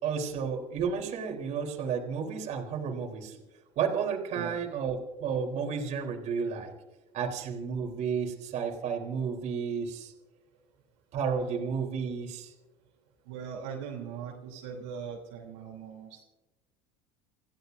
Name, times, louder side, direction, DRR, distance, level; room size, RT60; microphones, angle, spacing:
voice 1, 0.0-3.4 3.8-6.7 7.1-10.1 11.1-12.5, right 6 dB, 55° right, 1 dB, 3.8 m, -32 dB
voice 2, 13.2-16.2, right 7 dB, 75° right, -1 dB, 3.4 m, -40 dB
29.0 x 15.5 x 2.7 m, 1.1 s
supercardioid pair, 90°, 14 cm